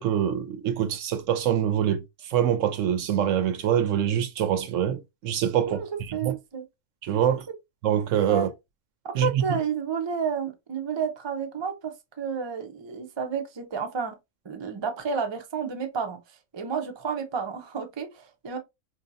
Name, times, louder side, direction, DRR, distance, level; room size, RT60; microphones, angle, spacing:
voice 1, 0.0-6.3 7.0-7.5 7.8-8.5 9.1-9.6, right 10 dB, 70° right, 0.9 m, -25 dB
voice 2, 5.7-6.6 7.3-7.4 8.3-8.5 9.0-14.2 14.4-16.2 16.5-18.6, right 6 dB, 35° right, 0.4 m, -31 dB
4.5 x 2.7 x 2.6 m
omnidirectional pair, 1.4 m